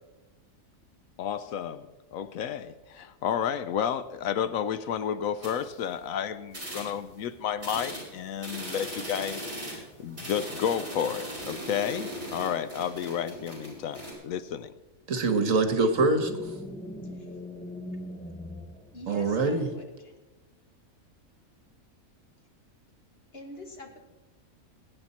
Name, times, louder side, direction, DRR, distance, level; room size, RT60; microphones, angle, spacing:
voice 1, 1.2-14.7, left 8 dB, 75° left, 13 dB, 1.0 m, -31 dB
sound 1, 5.4-6.1 6.5-7.2 7.6-14.1, equal, 35° right, 5.0 m, -39 dB
voice 2, 15.1-16.5 19.1-19.7, right 3 dB, 70° right, 8 dB, 1.7 m, -24 dB
sound 2, 15.9-19.6, left 1 dB, 5° left, 0.8 m, -40 dB
voice 3, 18.9-20.1 23.3-24.0, left 1 dB, 45° left, 3 dB, 1.9 m, -45 dB
21.0 x 8.9 x 4.2 m, 1.2 s
omnidirectional pair, 1.5 m